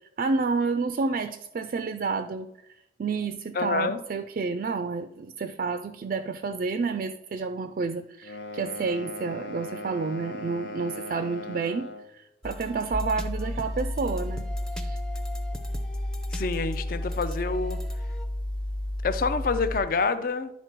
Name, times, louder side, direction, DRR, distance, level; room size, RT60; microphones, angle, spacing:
voice 1, 0.2-2.5 3.0-14.4 14.8-15.0, right 4 dB, 50° right, 9 dB, 0.3 m, -30 dB
voice 2, 3.5-4.0 16.3-17.8 19.0-20.5, left 4 dB, 50° left, 12 dB, 0.5 m, -27 dB
sound 1, 8.2-12.1, left 1 dB, 80° left, 0.8 m, -38 dB
sound 2, 12.4-18.3, equal, 5° left, 0.5 m, -42 dB
sound 3, 12.9-19.8, left 1 dB, 25° left, 1.2 m, -32 dB
10.5 x 4.1 x 4.5 m, 0.84 s
head